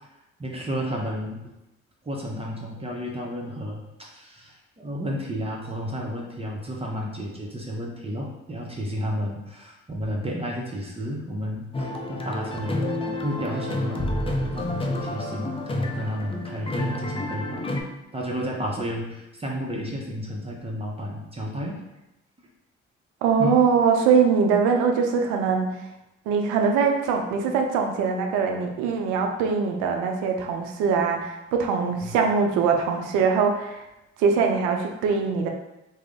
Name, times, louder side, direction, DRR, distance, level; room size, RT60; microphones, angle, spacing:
voice 1, 0.4-1.4 2.0-12.9 13.2-14.1 14.4-17.6 18.1-21.8 23.3-23.6 32.0-32.2, equal, 20° right, -1 dB, 0.6 m, -32 dB
sound 1, 11.7-17.8, left 1 dB, 20° left, 0.4 m, -29 dB
voice 2, 23.2-25.7 26.3-33.8 34.2-35.5, right 5 dB, 85° right, 3 dB, 0.5 m, -22 dB
2.4 x 2.0 x 3.6 m, 0.92 s
hypercardioid pair, 50°, 30 cm